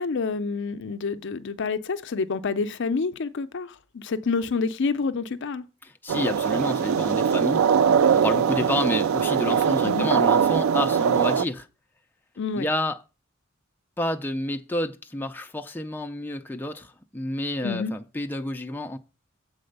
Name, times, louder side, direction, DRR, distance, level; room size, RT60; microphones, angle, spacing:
voice 1, 0.0-5.6 9.8-10.1 12.4-12.7 17.6-17.9, left 4 dB, 60° left, 0.5 m, -28 dB
voice 2, 5.8-7.7 8.1-11.7 12.5-13.0 14.0-19.0, left 1 dB, 10° left, 0.5 m, -29 dB
sound 1, 6.1-11.5, right 7 dB, 85° right, 0.3 m, -21 dB
7.7 x 4.2 x 6.5 m
head